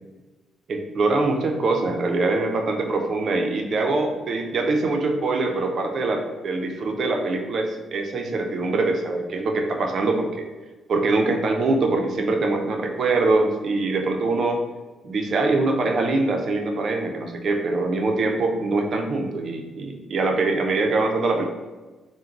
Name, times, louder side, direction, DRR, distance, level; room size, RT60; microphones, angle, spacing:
voice 1, 0.7-10.4 10.9-14.6 15.0-21.5, right 3 dB, 55° right, 3 dB, 0.6 m, -23 dB
3.8 x 2.2 x 4.5 m, 1.2 s
cardioid pair, 90°, 0 cm